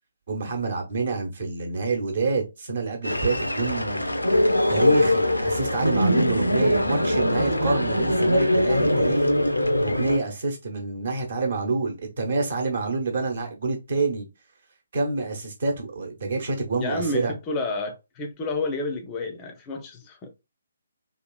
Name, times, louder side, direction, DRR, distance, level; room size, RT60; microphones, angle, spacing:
voice 1, 0.3-4.2 4.7-9.3 9.8-14.3 14.9-17.3, right 3 dB, 50° right, 0.9 m, -27 dB
sound 1, 3.0-10.2, left 1 dB, 90° left, 0.4 m, -22 dB
voice 2, 16.8-20.4, left 2 dB, 20° left, 0.4 m, -30 dB
2.8 x 2.3 x 2.2 m
figure-of-eight pair, 140°, 0 cm